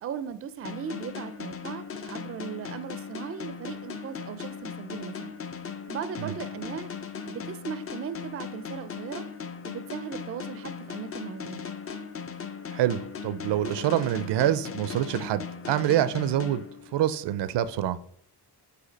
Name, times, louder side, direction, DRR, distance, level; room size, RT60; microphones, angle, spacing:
voice 1, 0.0-5.3 5.9-6.9 7.3-9.3 9.6-11.7, right 8 dB, 35° right, 0.4 m, -38 dB
sound 1, 0.6-17.2, left 6 dB, 35° left, 0.5 m, -38 dB
voice 2, 12.7-16.6 16.9-18.0, right 12 dB, 80° right, 0.6 m, -26 dB
8.3 x 2.8 x 5.1 m
wide cardioid pair, 130°, 41 cm